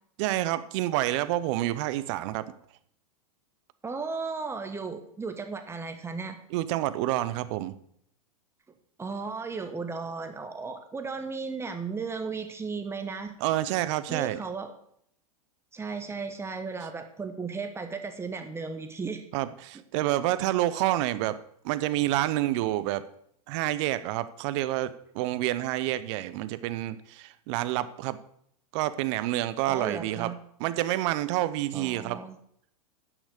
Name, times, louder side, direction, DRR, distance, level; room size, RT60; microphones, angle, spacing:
voice 1, 0.2-2.4 6.5-7.8 13.4-14.4 19.3-21.4 21.6-23.0 23.5-28.2 28.7-30.3 30.6-32.2, right 15 dB, 50° right, 14 dB, 0.8 m, -28 dB
voice 2, 3.8-6.4 9.0-13.3 14.1-14.7 15.7-19.2 29.7-30.3 31.7-32.3, right 4 dB, 15° right, 7 dB, 1.2 m, -35 dB
10.5 x 6.1 x 6.5 m, 0.70 s
hypercardioid pair, 105°, 19 cm